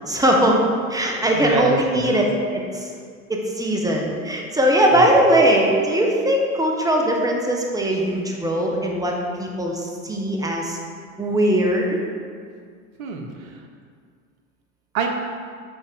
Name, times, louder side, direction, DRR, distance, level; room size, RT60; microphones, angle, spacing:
voice 1, 0.1-0.6 0.9-2.2 2.5-2.9 3.3-10.8 11.2-12.0, right 1 dB, 10° right, 0 dB, 1.1 m, -20 dB
voice 2, 1.3-2.2 4.9-5.1 13.0-13.5 14.9-15.1, right 5 dB, 70° right, 3 dB, 1.1 m, -26 dB
6.7 x 4.2 x 4.6 m, 2.1 s
hypercardioid pair, 85°, 42 cm